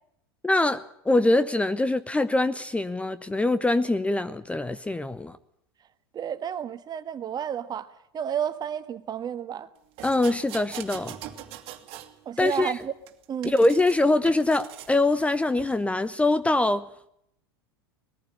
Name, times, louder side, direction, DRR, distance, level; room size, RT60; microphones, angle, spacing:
voice 1, 0.4-5.4 10.0-11.1 12.4-12.7 13.4-16.9, left 2 dB, 10° left, 0.8 m, -23 dB
voice 2, 6.1-9.7 12.2-12.9 13.3-13.5, right 9 dB, 30° right, 1.4 m, -31 dB
sound 1, 10.0-12.1 12.4-14.0 14.3-15.0 15.6-15.7, right 12 dB, 50° right, 2.3 m, -42 dB
20.5 x 14.5 x 9.6 m
hypercardioid pair, 85°, 13 cm